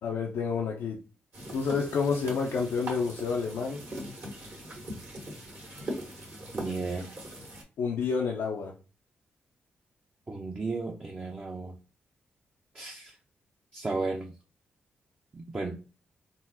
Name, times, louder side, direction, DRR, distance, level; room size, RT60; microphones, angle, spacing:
voice 1, 0.0-1.0 1.5-3.8 7.8-8.7, left 5 dB, 80° left, 0.5 m, -29 dB
sound 1, 1.3-7.6, right 1 dB, 60° right, 1.6 m, -41 dB
voice 2, 6.5-7.1 10.3-11.7 12.7-13.1 13.7-14.3 15.3-15.8, right 3 dB, 35° right, 0.6 m, -34 dB
3.7 x 2.0 x 2.7 m
supercardioid pair, 50°, 4 cm